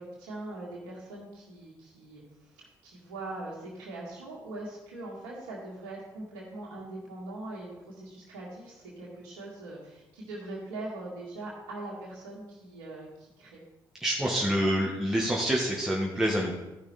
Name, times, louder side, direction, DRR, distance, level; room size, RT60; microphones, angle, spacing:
voice 1, 0.0-13.6, right 2 dB, 85° right, -5 dB, 2.0 m, -41 dB
voice 2, 14.0-16.5, equal, 5° right, -3 dB, 1.8 m, -27 dB
13.0 x 5.7 x 4.3 m, 1.0 s
hypercardioid pair, 50°, 10 cm